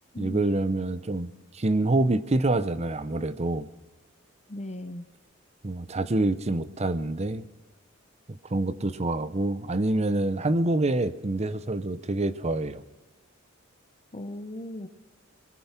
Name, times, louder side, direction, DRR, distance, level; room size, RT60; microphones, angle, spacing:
voice 1, 0.2-3.7 5.6-7.5 8.3-12.8, right 2 dB, 30° right, 13 dB, 0.7 m, -26 dB
voice 2, 4.5-5.1 14.1-14.9, left 1 dB, 30° left, 8 dB, 0.8 m, -37 dB
22.5 x 10.0 x 5.8 m, 1.2 s
head